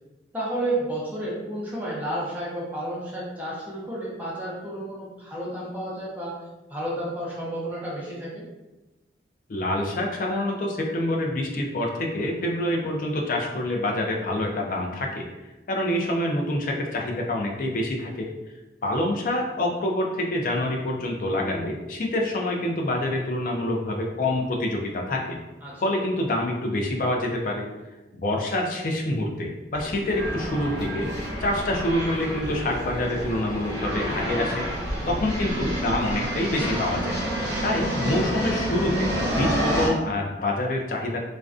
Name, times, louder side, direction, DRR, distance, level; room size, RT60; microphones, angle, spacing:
voice 1, 0.3-6.4 6.7-8.5 25.6-25.8 35.0-35.3, right 1 dB, 10° right, -7 dB, 0.6 m, -31 dB
voice 2, 9.5-15.3 15.7-18.3 18.8-25.4 25.8-27.7 28.1-31.1 31.4-34.6 35.1-37.2 37.6-41.2, left 1 dB, 50° left, 0 dB, 0.4 m, -26 dB
sound 1, 29.7-39.9, equal, 75° right, 1.0 m, -29 dB
2.4 x 2.2 x 2.3 m, 1.1 s
head